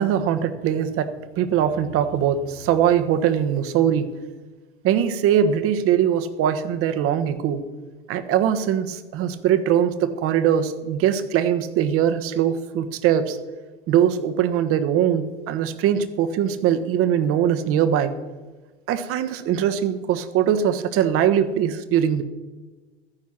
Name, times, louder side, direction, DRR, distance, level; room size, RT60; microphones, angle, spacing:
voice 1, 0.0-4.1 4.8-7.7 8.1-13.4 13.9-18.1 18.9-22.2, right 9 dB, 45° right, 10 dB, 1.3 m, -21 dB
14.0 x 10.0 x 5.9 m, 1.3 s
hypercardioid pair, 90°, 31 cm